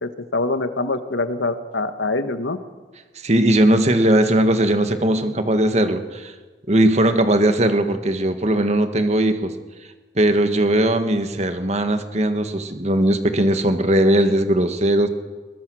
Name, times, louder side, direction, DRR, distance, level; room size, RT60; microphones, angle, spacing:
voice 1, 0.0-2.6, left 2 dB, 85° left, 9 dB, 1.5 m, -24 dB
voice 2, 3.2-6.3 6.7-9.5 10.2-15.1, right 1 dB, 40° right, 8 dB, 1.6 m, -19 dB
22.0 x 20.5 x 6.3 m, 1.3 s
head